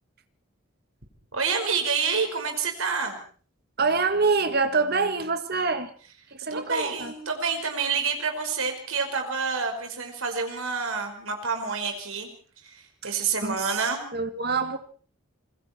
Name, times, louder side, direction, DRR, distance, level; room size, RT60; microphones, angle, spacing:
voice 1, 1.3-3.2 6.5-12.3 12.6-14.0, right 5 dB, 75° right, 4 dB, 5.3 m, -28 dB
voice 2, 3.8-5.9 6.3-7.1 13.0-13.9 14.1-14.8, right 4 dB, 45° right, 9 dB, 2.0 m, -26 dB
27.0 x 21.5 x 4.5 m, 0.43 s
head